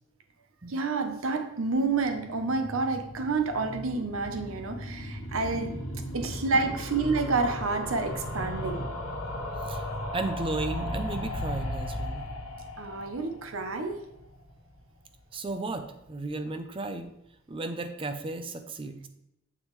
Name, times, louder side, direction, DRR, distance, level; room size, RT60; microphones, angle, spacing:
voice 1, 0.7-5.7 6.1-8.8 12.8-13.9, right 3 dB, 70° right, 6 dB, 0.8 m, -29 dB
sound 1, 1.8-14.9 15.2-15.3 15.5-15.6 15.8-15.9, left 1 dB, 80° left, 1.2 m, -36 dB
voice 2, 5.2-5.7 6.0-6.8 9.6-12.3 15.3-17.1 17.5-19.1, right 2 dB, 25° right, 8 dB, 0.5 m, -35 dB
7.2 x 6.4 x 3.2 m, 0.85 s
head